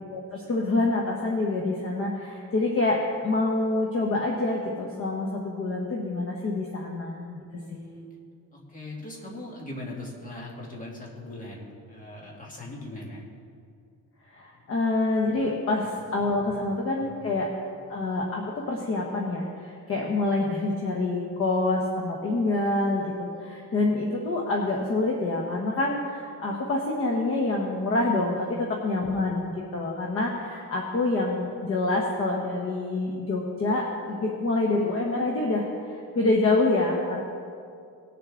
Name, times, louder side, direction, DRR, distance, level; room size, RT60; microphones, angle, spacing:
voice 1, 0.1-7.4 7.7-7.8 14.3-17.5 17.9-37.2, left 2 dB, 40° left, -1 dB, 1.1 m, -26 dB
voice 2, 7.5-8.1 8.5-13.2 14.5-14.7 16.2-16.6 17.0-17.2 28.3-28.6, left 1 dB, 25° left, -3 dB, 2.0 m, -40 dB
19.0 x 6.8 x 3.8 m, 2.4 s
cardioid pair, 160°, 34 cm